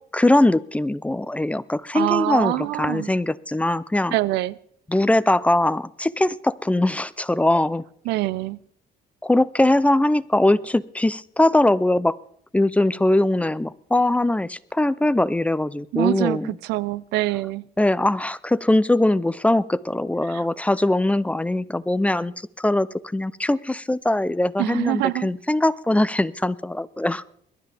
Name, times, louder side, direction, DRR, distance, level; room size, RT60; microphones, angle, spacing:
voice 1, 0.1-2.5 2.8-4.1 4.9-7.8 9.2-12.2 12.5-16.5 17.8-22.9 23.1-27.2, left 1 dB, 10° left, 0.5 m, -21 dB
voice 2, 1.9-3.1 4.1-4.6 8.1-8.6 15.9-17.7 20.3-20.5 24.6-25.3, right 18 dB, 90° right, 0.6 m, -25 dB
21.5 x 13.0 x 3.5 m
cardioid pair, 110°, 17 cm